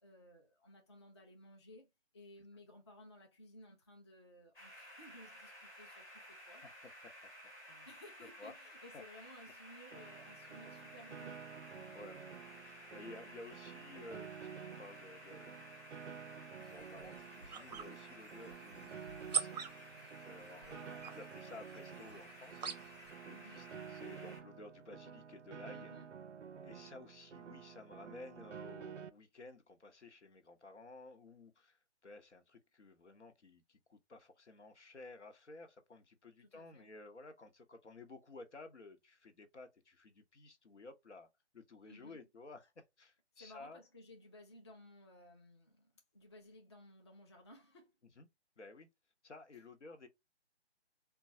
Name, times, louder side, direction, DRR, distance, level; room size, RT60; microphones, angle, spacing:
voice 1, 0.0-6.6 7.9-11.4 11.8-12.1 20.6-21.3 23.3-23.6 25.7-26.1 36.4-36.9 41.8-42.2 43.3-47.9, left 1 dB, 25° left, 0.4 m, -58 dB
sound 1, 4.5-24.4, equal, 10° left, 1.0 m, -55 dB
voice 2, 8.2-8.5 8.9-9.0 11.9-12.3 12.6-15.7 16.0-16.2 16.5-19.0 19.3-19.6 20.2-22.8 23.2-25.9 26.6-43.8 48.2-48.3 48.6-48.9 49.2-50.1, left 3 dB, 80° left, 0.9 m, -54 dB
Piano, 9.9-29.1, right 7 dB, 85° right, 0.5 m, -51 dB
sound 2, 16.6-23.1, right 7 dB, 40° right, 0.5 m, -45 dB
3.8 x 2.3 x 2.7 m
figure-of-eight pair, 145°, 34 cm